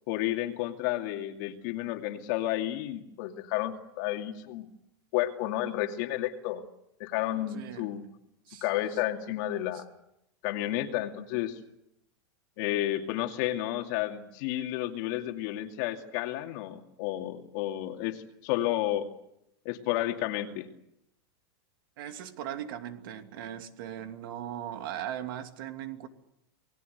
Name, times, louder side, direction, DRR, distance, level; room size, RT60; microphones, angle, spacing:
voice 1, 0.1-4.7 5.1-6.6 7.0-8.0 8.6-9.8 10.4-11.6 12.6-19.1 19.6-20.7, left 14 dB, 45° left, 2.5 m, -31 dB
voice 2, 7.5-7.9 8.5-8.6 9.7-9.8 22.0-26.1, right 11 dB, 55° right, 2.7 m, -39 dB
28.5 x 20.0 x 8.1 m
supercardioid pair, 165°, 14 cm